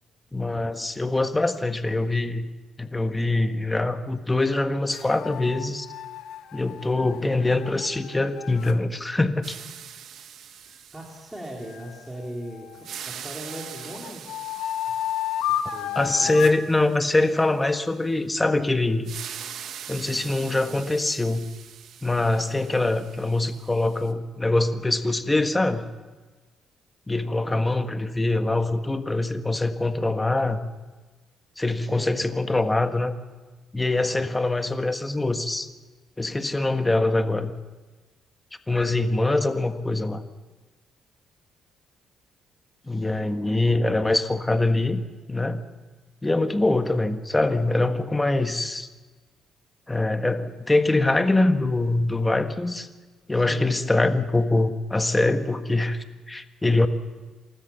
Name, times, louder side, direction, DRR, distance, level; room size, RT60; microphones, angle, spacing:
voice 1, 0.3-2.5 2.8-5.9 6.5-9.6 15.9-19.1 19.9-21.5 22.0-25.8 27.1-30.6 31.6-33.1 33.7-35.7 36.2-37.5 38.7-40.2 42.9-45.0 45.3-45.6 46.2-48.9 49.9-52.9 53.3-56.9, left 2 dB, 15° left, 8 dB, 1.5 m, -23 dB
sound 1, 4.9-8.8 11.7-13.0 13.5-16.7, left 11 dB, 85° left, 1.0 m, -32 dB
sound 2, 9.4-12.4 12.7-17.5 19.0-24.1, right 9 dB, 75° right, 1.4 m, -43 dB
voice 2, 10.9-14.3 15.6-16.7 27.4-27.7 31.8-32.1 34.1-34.5 42.8-43.4 53.3-54.0, right 1 dB, 10° right, -2 dB, 3.7 m, -39 dB
28.5 x 13.5 x 7.2 m, 1.3 s
cardioid pair, 90°, 0 cm